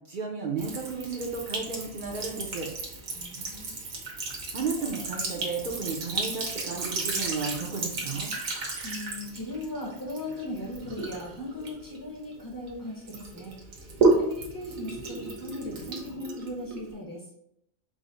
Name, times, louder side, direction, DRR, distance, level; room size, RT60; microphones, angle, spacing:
voice 1, 0.1-2.7 4.5-8.3, right 4 dB, 50° right, 0 dB, 0.6 m, -33 dB
Sink (filling or washing) / Trickle dribble, 0.6-12.7 13.1-16.9, right 3 dB, 75° right, 1.3 m, -32 dB
voice 2, 3.1-3.8 8.8-13.5 13.8-17.3, left 1 dB, 20° left, -3 dB, 0.7 m, -38 dB
4.9 x 2.0 x 3.9 m, 0.78 s
omnidirectional pair, 1.4 m